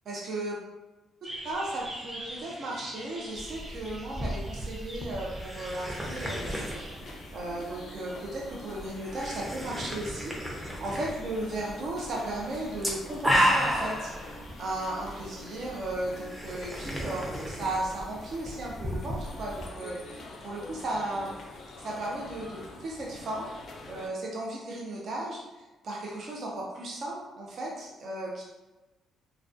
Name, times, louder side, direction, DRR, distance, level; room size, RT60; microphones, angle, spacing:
voice 1, 0.1-0.6 1.4-14.1 14.6-21.4 21.8-23.5 23.9-28.4, right 1 dB, 60° right, -3 dB, 0.5 m, -35 dB
sound 1, 1.2-6.9, right 1 dB, 30° right, 1.1 m, -44 dB
sound 2, 3.4-19.7, equal, 5° right, 0.5 m, -34 dB
sound 3, 6.1-24.1, left 1 dB, 60° left, 0.4 m, -46 dB
2.2 x 2.2 x 2.5 m, 1.1 s
cardioid pair, 90°, 0 cm